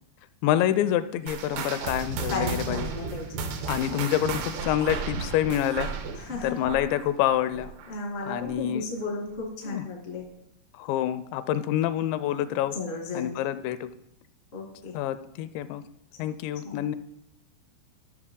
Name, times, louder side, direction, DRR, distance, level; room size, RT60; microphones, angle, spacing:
voice 1, 0.4-2.9 3.7-5.9 6.4-7.7 8.2-8.9 9.7-9.9 10.7-12.8 13.1-13.9 14.9-15.8 16.2-17.0, left 12 dB, 85° left, 13 dB, 2.8 m, -27 dB
sound 1, 1.3-8.1 8.4-8.7 9.3-9.4 10.2-10.3, right 5 dB, 80° right, 2.9 m, -34 dB
voice 2, 2.3-3.5 6.1-6.5 7.9-10.2 12.7-13.3 14.5-14.9 16.6-16.7, left 3 dB, 60° left, -1 dB, 0.6 m, -34 dB
12.5 x 6.3 x 3.7 m, 0.79 s
omnidirectional pair, 5.1 m